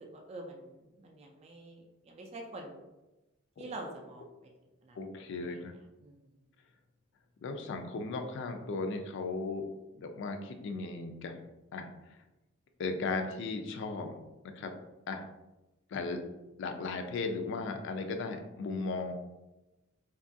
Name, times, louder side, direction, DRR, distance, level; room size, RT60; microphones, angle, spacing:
voice 1, 0.0-2.8 3.6-4.3 4.8-5.0 5.4-5.6 6.0-6.2, right 2 dB, 30° right, 1 dB, 0.3 m, -46 dB
voice 2, 5.0-5.8 7.4-9.7 10.0-11.4 11.7-11.9 12.8-14.2 14.4-14.7 15.1-15.2 15.9-16.2 16.6-19.1, left 3 dB, 60° left, 5 dB, 0.3 m, -36 dB
2.9 x 2.3 x 2.6 m, 1.0 s
head